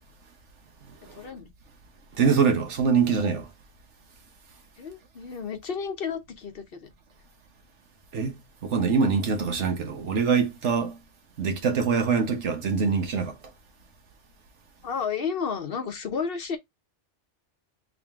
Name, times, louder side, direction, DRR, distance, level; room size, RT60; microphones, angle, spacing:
voice 1, 1.2-1.5 4.8-6.9 14.8-16.6, left 6 dB, 55° left, 0.9 m, -32 dB
voice 2, 2.2-3.5 8.1-11.0 11.4-13.3, right 5 dB, 75° right, 1.3 m, -24 dB
3.8 x 2.9 x 3.5 m
omnidirectional pair, 1.2 m